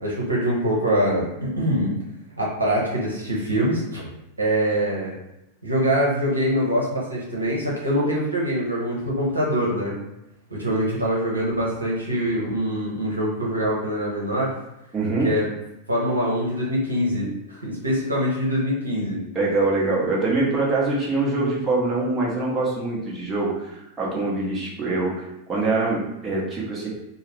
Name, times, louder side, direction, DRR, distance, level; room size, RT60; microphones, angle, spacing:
voice 1, 0.0-2.0 2.4-4.1 4.4-5.1 5.6-10.0 10.5-14.5 15.2-15.5 15.9-19.2, equal, 80° right, -5 dB, 0.8 m, -24 dB
voice 2, 14.9-15.3 19.3-26.9, right 3 dB, 20° right, -5 dB, 0.9 m, -24 dB
2.7 x 2.0 x 3.2 m, 0.90 s
figure-of-eight pair, 90°, 0 cm